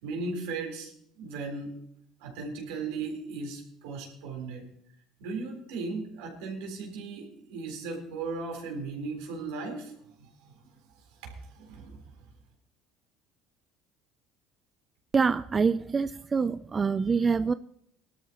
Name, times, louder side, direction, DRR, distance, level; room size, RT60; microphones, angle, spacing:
voice 1, 0.0-0.9 1.2-1.7 2.2-4.7 5.2-9.9 10.2-10.6 11.2-12.0, right 3 dB, 75° right, 3.9 m, -37 dB
voice 2, 15.1-17.5, right 5 dB, 30° right, 0.4 m, -25 dB
19.5 x 12.5 x 3.0 m
hypercardioid pair, 75°, 0 cm